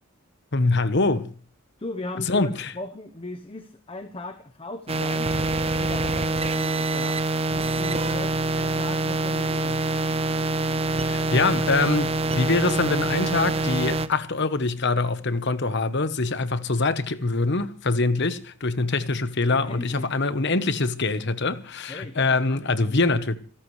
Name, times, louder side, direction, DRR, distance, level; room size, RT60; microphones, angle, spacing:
voice 1, 0.5-1.3 2.3-2.7 11.0-23.4, left 3 dB, 55° left, 1.1 m, -24 dB
voice 2, 1.8-5.3 5.6-7.2 7.8-9.8 19.5-20.1 21.9-23.4, left 2 dB, 25° left, 1.0 m, -38 dB
sound 1, 4.9-14.1, right 2 dB, 30° right, 0.9 m, -25 dB
27.0 x 13.5 x 3.3 m
head